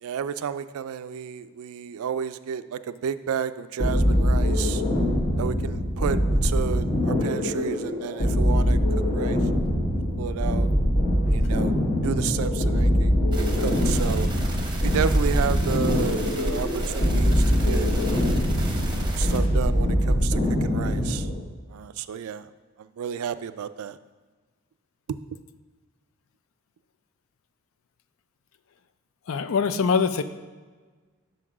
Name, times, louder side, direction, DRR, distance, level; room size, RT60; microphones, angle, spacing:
voice 1, 0.0-4.8 5.4-8.8 9.1-9.4 10.2-10.7 11.3-11.8 12.0-13.1 13.4-14.3 14.8-18.5 18.9-21.3 21.7-22.5 22.8-24.0, right 7 dB, 75° right, 13 dB, 0.3 m, -31 dB
sound 1, 3.8-21.4, equal, 30° left, 1.0 m, -23 dB
sound 2, 13.3-19.4, right 1 dB, 20° right, 0.8 m, -30 dB
voice 2, 29.3-30.2, left 5 dB, 70° left, 12 dB, 0.4 m, -23 dB
5.9 x 5.3 x 6.0 m, 1.4 s
head